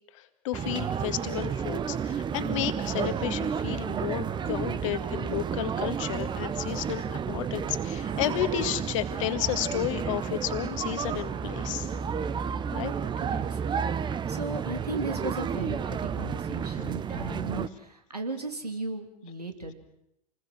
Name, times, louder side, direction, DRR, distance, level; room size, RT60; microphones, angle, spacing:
voice 1, 0.1-11.9 12.7-13.0, left 12 dB, 55° left, 10 dB, 1.9 m, -32 dB
sound 1, 0.5-17.7, right 7 dB, 25° right, 1.1 m, -31 dB
voice 2, 13.2-13.6 14.3-19.7, right 3 dB, 85° right, 5 dB, 3.2 m, -36 dB
28.0 x 20.5 x 7.6 m, 0.82 s
figure-of-eight pair, 80°, 20 cm